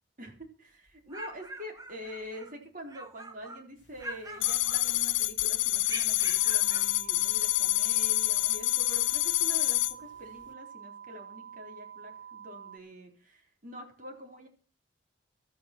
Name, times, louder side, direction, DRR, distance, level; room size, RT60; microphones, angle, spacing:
voice 1, 0.2-14.5, equal, 45° right, 3 dB, 3.9 m, -45 dB
sound 1, 0.9-2.5 2.9-3.7 4.0-5.3 5.8-6.9, right 2 dB, 20° right, 1.4 m, -44 dB
sound 2, 4.4-9.9, left 16 dB, 80° left, 1.2 m, -27 dB
sound 3, 6.4-12.8, right 8 dB, 90° right, 1.5 m, -47 dB
14.5 x 13.5 x 4.4 m, 0.37 s
head